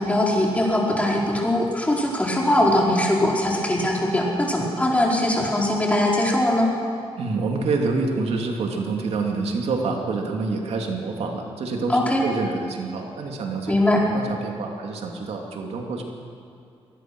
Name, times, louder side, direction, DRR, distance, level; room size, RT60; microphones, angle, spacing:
voice 1, 0.0-6.7 11.9-12.3 13.7-14.0, left 1 dB, 15° left, -3 dB, 4.7 m, -21 dB
voice 2, 7.2-16.0, right 3 dB, 85° right, 2 dB, 2.6 m, -27 dB
23.5 x 19.5 x 6.2 m, 2.5 s
cardioid pair, 105°, 10 cm